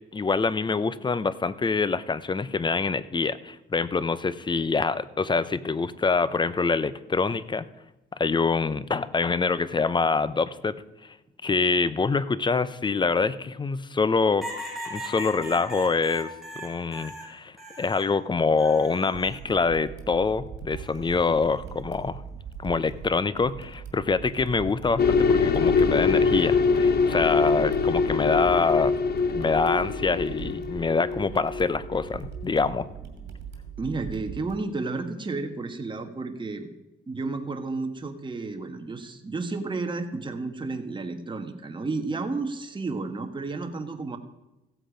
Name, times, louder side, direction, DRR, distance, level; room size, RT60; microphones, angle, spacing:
voice 1, 0.1-7.6 8.2-10.8 11.0-11.1 11.4-14.5 14.9-22.2 22.6-28.9 29.3-32.9, left 4 dB, 25° left, 16 dB, 0.6 m, -25 dB
sound 1, 14.4-18.1 18.6-19.4 20.7-21.2, equal, ahead, 3.8 m, -39 dB
sound 2, 19.1-34.6, right 7 dB, 60° right, 2.4 m, -41 dB
sound 3, 25.0-32.1, left 5 dB, 55° left, 1.0 m, -23 dB
voice 2, 33.8-36.7 37.1-44.2, right 3 dB, 25° right, 5 dB, 1.3 m, -32 dB
15.5 x 7.7 x 5.0 m, 0.96 s
cardioid pair, 90°, 20 cm